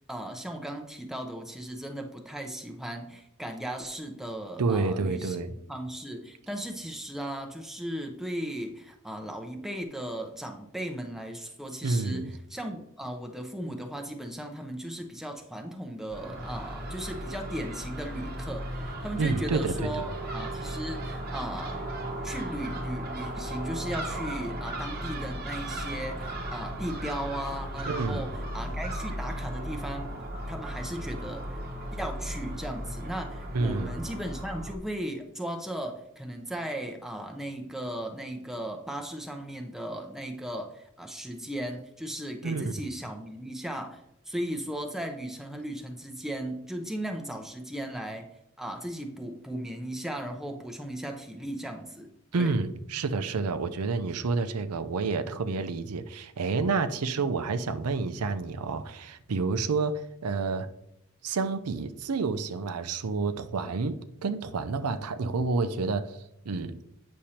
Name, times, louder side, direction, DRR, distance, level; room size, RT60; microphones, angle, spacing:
voice 1, 0.1-5.4 5.7-21.8 22.2-30.1 30.5-31.6 31.9-48.3 48.6-52.5, right 1 dB, ahead, 2 dB, 0.6 m, -36 dB
voice 2, 4.6-5.5 11.8-12.3 19.2-20.1 27.9-28.2 33.5-33.9 42.4-42.7 52.3-60.7 61.2-66.2 66.4-66.8, right 4 dB, 90° right, 11 dB, 0.5 m, -29 dB
Crow / Gull seagull, 16.1-34.7, right 1 dB, 40° right, 1.0 m, -36 dB
8.5 x 6.3 x 2.8 m, 0.81 s
head